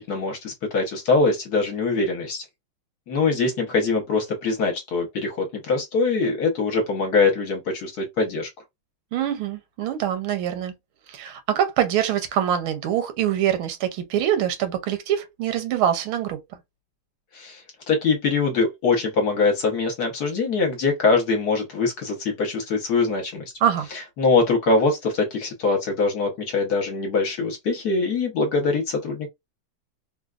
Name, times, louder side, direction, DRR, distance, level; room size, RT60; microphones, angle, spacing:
voice 1, 0.0-2.4 3.1-8.5 17.3-17.6 17.9-23.5 24.2-29.3, left 4 dB, 60° left, 1.3 m, -23 dB
voice 2, 9.1-10.7 11.1-16.4 23.6-23.9, right 10 dB, 85° right, 1.6 m, -24 dB
3.8 x 2.2 x 2.3 m
omnidirectional pair, 2.2 m